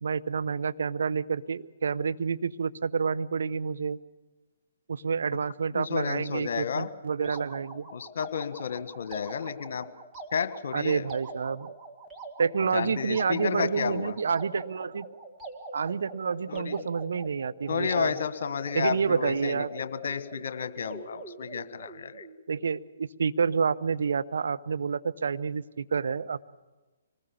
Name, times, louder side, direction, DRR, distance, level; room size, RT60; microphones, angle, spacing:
voice 1, 0.0-4.0 4.9-7.8 10.7-11.7 12.4-15.1 15.7-18.2 18.7-19.7 22.5-26.4, right 5 dB, 65° right, 12 dB, 0.8 m, -29 dB
voice 2, 5.7-6.9 7.2-7.4 7.9-9.9 10.3-11.1 12.7-14.1 16.5-16.8 17.7-22.2, left 6 dB, 60° left, 11 dB, 1.5 m, -32 dB
sound 1, 7.2-22.4, right 3 dB, 15° right, 2.2 m, -44 dB
25.5 x 20.0 x 7.0 m, 1.2 s
figure-of-eight pair, 130°, 0 cm